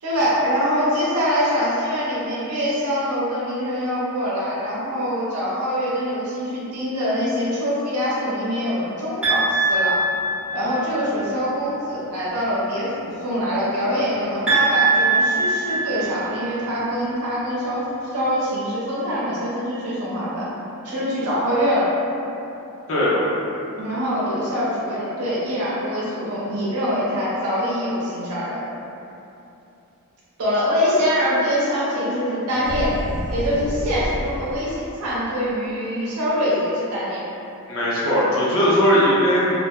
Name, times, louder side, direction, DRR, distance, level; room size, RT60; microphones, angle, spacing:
voice 1, 0.0-10.0 10.5-17.8 18.1-20.5 20.8-21.9 23.8-28.6 30.4-32.9 33.3-37.2, equal, 85° right, -8 dB, 0.6 m, -24 dB
sound 1, 9.2-10.9 14.5-16.5, right 3 dB, 5° right, 0.8 m, -21 dB
voice 2, 22.9-23.2 37.7-39.5, equal, 60° left, -8 dB, 0.8 m, -18 dB
sound 2, 32.6-34.8, equal, 90° left, 0.4 m, -29 dB
2.5 x 2.0 x 3.5 m, 2.9 s
head